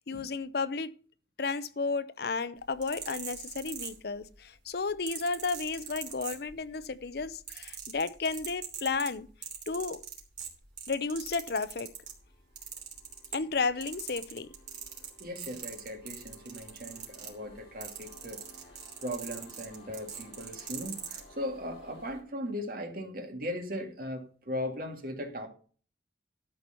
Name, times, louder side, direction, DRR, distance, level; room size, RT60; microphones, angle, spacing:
voice 1, 0.1-0.9 1.4-9.3 9.7-10.0 10.9-11.9 13.3-14.5, left 4 dB, 60° left, 0.6 m, -33 dB
sound 1, 2.6-4.4 5.1-6.8 7.1-12.2 12.6-13.6 13.8-21.2 22.0-22.1, right 7 dB, 70° right, 3.1 m, -41 dB
sound 2, 11.8-22.2, left 2 dB, 35° left, 4.3 m, -58 dB
voice 2, 15.2-25.5, equal, 50° right, 2.0 m, -38 dB
12.5 x 4.6 x 6.8 m
head